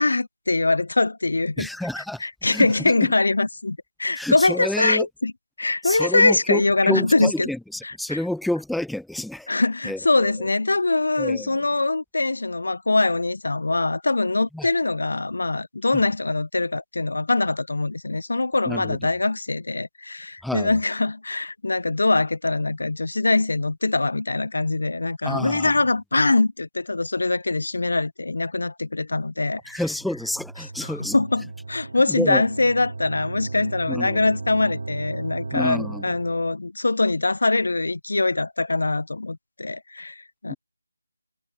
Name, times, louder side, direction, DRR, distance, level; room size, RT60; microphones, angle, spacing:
voice 1, 0.0-1.7 2.0-5.3 5.6-7.5 7.8-8.2 9.5-29.8 30.6-40.5, left 2 dB, 70° left, 0.8 m, -23 dB
voice 2, 1.6-2.2 2.5-2.7 4.2-5.1 5.8-9.5 9.8-10.3 11.2-11.5 14.5-14.7 15.9-16.0 18.7-19.0 20.4-20.7 25.2-25.7 29.7-31.2 32.1-32.4 33.9-34.2 35.5-36.0 40.5-40.6, left 1 dB, ahead, 1.2 m, -29 dB
sound 1, 29.7-36.5, right 3 dB, 60° right, 5.1 m, -36 dB
figure-of-eight pair, 170°, 0 cm